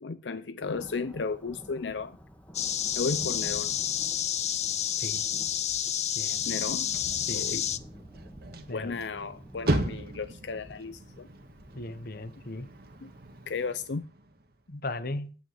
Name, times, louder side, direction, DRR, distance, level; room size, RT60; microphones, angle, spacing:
voice 1, 0.0-2.2 3.0-3.7 6.4-6.9 7.3-7.7 8.7-11.3 13.0-13.1 13.5-14.1, left 4 dB, 85° left, 0.6 m, -34 dB
Thunder, 0.6-13.7, equal, 10° left, 1.7 m, -49 dB
sound 1, 2.5-7.8, left 10 dB, 40° left, 0.7 m, -30 dB
sound 2, 6.4-14.7, right 1 dB, 60° right, 1.7 m, -37 dB
voice 2, 7.3-7.6 8.7-8.9 11.7-12.7 14.7-15.4, left 2 dB, 55° left, 1.1 m, -37 dB
9.6 x 8.6 x 8.0 m
head